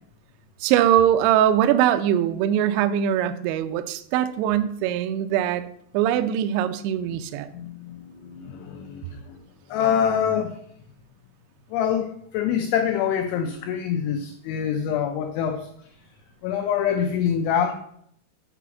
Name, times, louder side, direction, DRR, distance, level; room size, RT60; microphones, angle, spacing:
voice 1, 0.6-5.6 5.9-7.5, right 10 dB, 90° right, 10 dB, 2.6 m, -21 dB
voice 2, 7.6-9.0 9.7-10.6 11.7-15.7 16.4-17.7, left 8 dB, 80° left, 5 dB, 2.8 m, -25 dB
8.4 x 5.0 x 7.0 m, 0.67 s
omnidirectional pair, 6.0 m